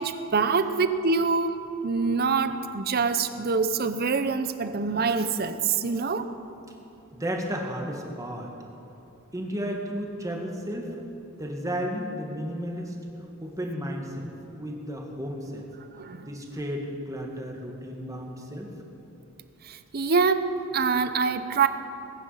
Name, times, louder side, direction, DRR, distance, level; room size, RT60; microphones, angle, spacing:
voice 1, 0.0-6.3 16.0-16.3 19.7-21.7, right 4 dB, 50° right, 11 dB, 0.7 m, -25 dB
voice 2, 7.1-8.5 9.3-10.9 11.4-13.0 13.4-15.7 16.3-18.7, equal, 15° right, 0 dB, 1.9 m, -33 dB
20.5 x 9.9 x 5.7 m, 2.9 s
head